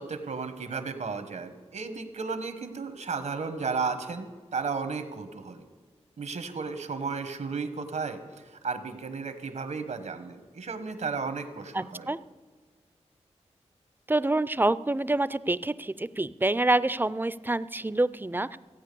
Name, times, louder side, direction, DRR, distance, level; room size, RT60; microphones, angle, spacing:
voice 1, 0.0-5.6 6.2-12.1, right 4 dB, 80° right, 9 dB, 1.3 m, -34 dB
voice 2, 11.7-12.2 14.1-18.6, right 2 dB, 15° right, 17 dB, 0.4 m, -27 dB
15.5 x 9.0 x 6.9 m, 1.5 s
cardioid pair, 60°, 12 cm